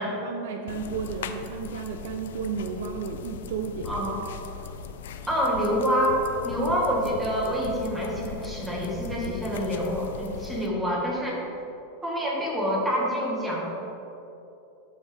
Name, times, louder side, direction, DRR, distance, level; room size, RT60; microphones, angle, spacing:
voice 1, 0.2-4.0, right 6 dB, 70° right, 4 dB, 0.5 m, -33 dB
sound 1, 0.7-10.7, left 6 dB, 85° left, 0.5 m, -39 dB
voice 2, 3.8-4.2 5.3-11.4 12.0-13.7, equal, 10° right, -4 dB, 1.7 m, -27 dB
12.0 x 5.5 x 3.4 m, 2.9 s
supercardioid pair, 140°, 0 cm